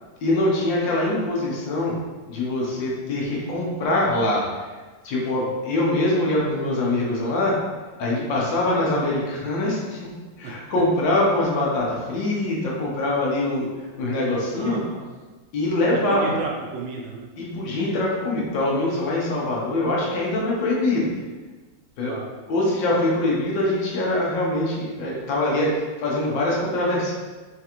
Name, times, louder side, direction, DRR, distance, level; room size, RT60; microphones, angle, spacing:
voice 1, 0.2-1.9 2.3-4.6 5.0-7.5 8.0-10.1 10.4-13.7 14.0-14.8 15.5-16.3 17.4-21.1 22.0-22.1 22.5-27.1, left 1 dB, 75° left, -4 dB, 1.5 m, -23 dB
voice 2, 14.5-15.1 16.1-17.3 22.0-22.3, right 3 dB, 75° right, -1 dB, 1.2 m, -33 dB
4.5 x 2.4 x 2.9 m, 1.3 s
omnidirectional pair, 2.1 m